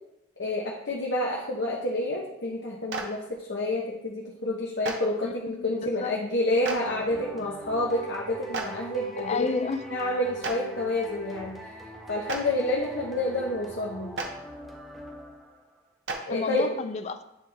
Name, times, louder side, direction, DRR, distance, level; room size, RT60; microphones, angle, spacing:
voice 1, 0.4-9.5 9.9-11.6 12.1-14.1 16.3-16.7, left 1 dB, 65° left, -2 dB, 0.9 m, -29 dB
Clapping, 2.9-3.0 4.8-4.9 6.6-6.8 8.5-8.6 10.4-10.5 12.2-12.4 14.1-14.3 16.1-16.2, right 3 dB, 65° right, 0.8 m, -30 dB
voice 2, 5.2-6.2 9.2-10.0 16.3-17.2, left 4 dB, 35° left, 11 dB, 0.3 m, -31 dB
sound 1, 6.9-15.8, equal, ahead, 1.3 m, -43 dB
9.6 x 3.5 x 3.4 m, 0.91 s
head